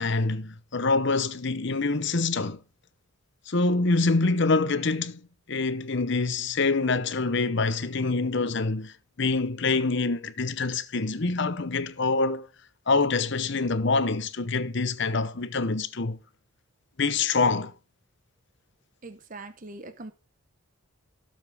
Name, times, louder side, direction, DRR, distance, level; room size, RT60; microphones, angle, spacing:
voice 1, 0.0-2.6 3.5-5.2 5.5-12.5 12.9-16.2 17.0-17.7, left 3 dB, 55° left, 0.8 m, -25 dB
voice 2, 19.0-20.1, right 2 dB, 35° right, 0.9 m, -42 dB
17.0 x 7.2 x 3.5 m
head